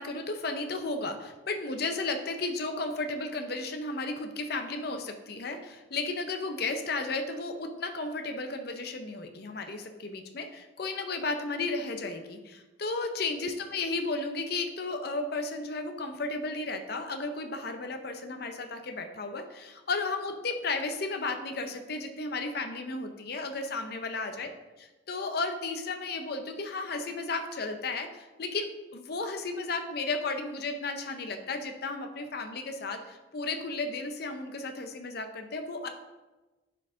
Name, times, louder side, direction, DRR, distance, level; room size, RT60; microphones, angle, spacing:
voice 1, 0.0-24.5 25.1-35.9, left 3 dB, 55° left, 5 dB, 0.6 m, -34 dB
9.7 x 4.6 x 3.7 m, 1.1 s
head